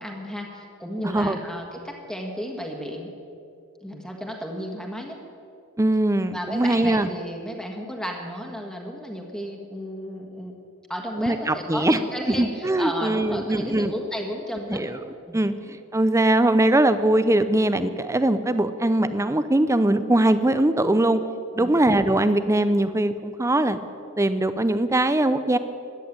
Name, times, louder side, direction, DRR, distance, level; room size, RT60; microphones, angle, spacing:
voice 1, 0.0-3.1 3.8-5.2 6.3-10.5 10.9-14.9 15.3-15.5 21.5-21.8, equal, 5° left, 1 dB, 1.5 m, -33 dB
voice 2, 1.0-1.4 5.8-7.1 11.2-12.0 12.3-13.9 14.7-15.0 15.3-15.5 15.9-21.2 21.6-23.8 24.2-25.6, right 1 dB, 15° right, 11 dB, 0.6 m, -21 dB
14.0 x 10.5 x 8.8 m, 2.5 s
head